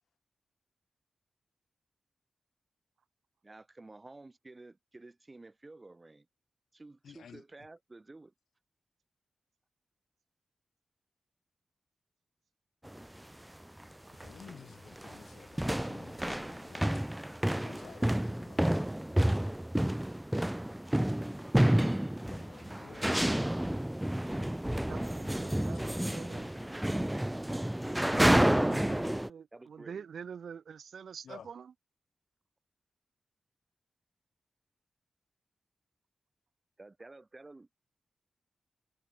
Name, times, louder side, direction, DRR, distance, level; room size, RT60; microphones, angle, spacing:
voice 1, 3.4-6.3 6.7-8.3 26.3-28.5 29.5-30.1 36.8-37.8, right 2 dB, 30° right, 5.1 m, -52 dB
voice 2, 7.0-7.4 14.1-17.1 17.6-19.0 21.8-23.2 25.5-26.5 31.2-31.5, left 8 dB, 90° left, 1.1 m, -54 dB
sound 1, 12.8-13.0 13.8-13.9 14.2-14.6 14.9-29.3, right 1 dB, 10° right, 0.5 m, -30 dB
voice 3, 24.9-26.5 28.0-31.7, right 7 dB, 80° right, 2.0 m, -46 dB
cardioid pair, 70°, 0 cm